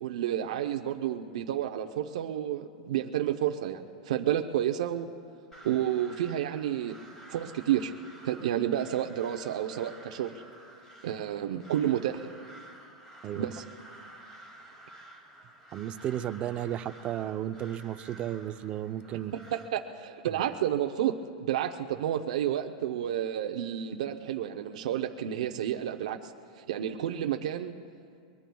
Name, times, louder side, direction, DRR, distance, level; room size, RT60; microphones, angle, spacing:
voice 1, 0.0-5.1 5.6-7.0 7.3-7.9 8.2-10.3 11.0-12.3 13.4-13.6 19.5-27.7, right 11 dB, 75° right, 5 dB, 0.7 m, -30 dB
Crow, 5.5-19.7, right 1 dB, 10° left, 2.3 m, -51 dB
voice 2, 15.7-19.3, right 11 dB, 30° right, 10 dB, 0.5 m, -34 dB
23.5 x 22.0 x 2.3 m, 2.3 s
supercardioid pair, 140°, 4 cm